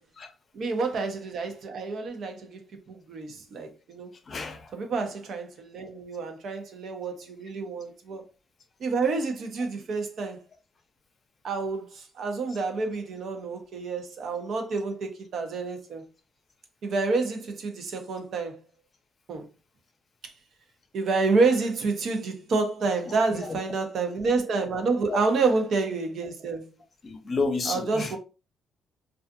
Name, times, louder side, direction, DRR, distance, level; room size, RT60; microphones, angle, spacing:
voice 1, 0.5-2.6 2.9-4.1 4.7-8.2 8.8-10.4 11.4-16.1 16.8-18.6 19.3-19.5 20.9-26.7 27.7-28.2, right 4 dB, 65° right, 0.6 m, -28 dB
voice 2, 4.3-4.7 23.1-23.6 25.1-25.2 27.0-28.2, left 3 dB, 40° left, 0.6 m, -31 dB
2.5 x 2.4 x 2.4 m
cardioid pair, 90°, 0 cm